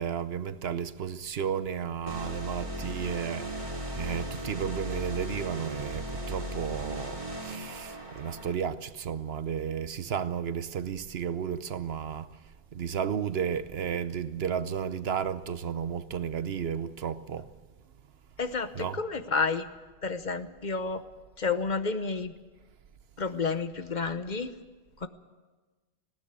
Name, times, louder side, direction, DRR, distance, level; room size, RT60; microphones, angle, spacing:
voice 1, 0.0-12.3 12.7-17.5 18.7-19.0, right 8 dB, 75° right, 1.0 m, -33 dB
sound 1, 2.1-8.5, right 1 dB, 30° right, 2.5 m, -37 dB
voice 2, 18.4-19.7 20.0-21.0 21.4-22.3 23.2-24.5 25.0-25.1, left 4 dB, 50° left, 1.0 m, -30 dB
19.5 x 16.5 x 8.3 m
omnidirectional pair, 1.1 m